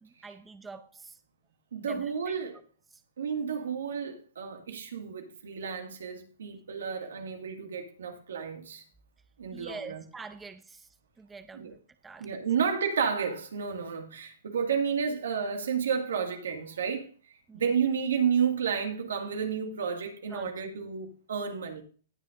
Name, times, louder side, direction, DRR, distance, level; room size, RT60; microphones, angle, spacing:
voice 1, 0.0-1.2 1.8-2.3 9.5-10.9 11.2-12.4 17.5-17.6 20.3-20.7, right 4 dB, 10° right, 0.7 m, -45 dB
voice 2, 1.7-2.5 3.2-8.8 9.4-10.0 11.5-11.7 12.2-17.1 17.5-21.8, right 6 dB, 85° right, 2.0 m, -31 dB
19.0 x 6.3 x 2.6 m
hypercardioid pair, 130°, 0 cm